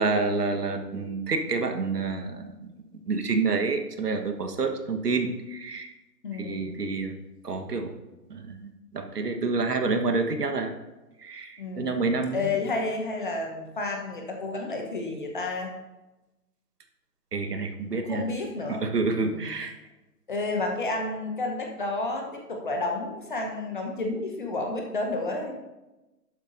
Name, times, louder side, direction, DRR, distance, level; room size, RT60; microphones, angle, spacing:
voice 1, 0.0-2.7 3.1-5.9 6.4-7.2 7.4-7.9 8.3-10.7 11.2-12.6 17.3-18.2 18.7-19.7, right 4 dB, 70° right, 5 dB, 1.5 m, -28 dB
voice 2, 6.2-6.7 11.6-15.7 17.9-18.8 19.2-19.5 20.3-25.6, left 2 dB, 30° left, 2 dB, 1.1 m, -31 dB
12.0 x 8.3 x 2.7 m, 1.0 s
hypercardioid pair, 165°, 49 cm